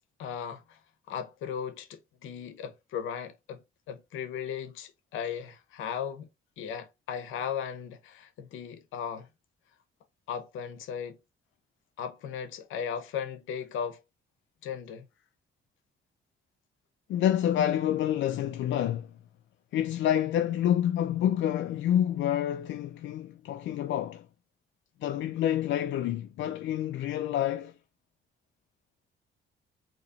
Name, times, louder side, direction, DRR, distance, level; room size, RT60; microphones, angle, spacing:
voice 1, 0.2-0.8 1.1-6.3 6.6-9.3 10.3-11.2 12.0-14.0 14.6-15.1, left 8 dB, 85° left, 0.9 m, -37 dB
voice 2, 17.1-19.1 19.7-24.2 25.0-27.7, left 11 dB, 70° left, 0.5 m, -28 dB
4.0 x 2.9 x 4.1 m
cardioid pair, 90°, 20 cm